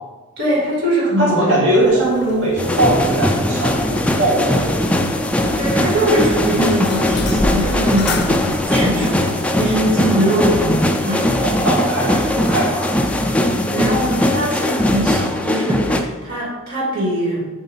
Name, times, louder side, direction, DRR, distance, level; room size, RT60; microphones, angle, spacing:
voice 1, 0.4-1.4 5.6-11.4 13.7-17.5, right 1 dB, 50° right, -7 dB, 2.5 m, -21 dB
voice 2, 1.2-4.9 5.5-5.9 11.4-12.9, right 1 dB, 75° right, -7 dB, 2.3 m, -20 dB
sound 1, 1.8-9.5, left 2 dB, 50° left, 0.6 m, -30 dB
sound 2, 2.6-16.0, left 1 dB, 5° left, 0.4 m, -19 dB
sound 3, 5.7-11.6, equal, 30° right, 1.6 m, -38 dB
7.9 x 3.5 x 5.6 m, 1.2 s
head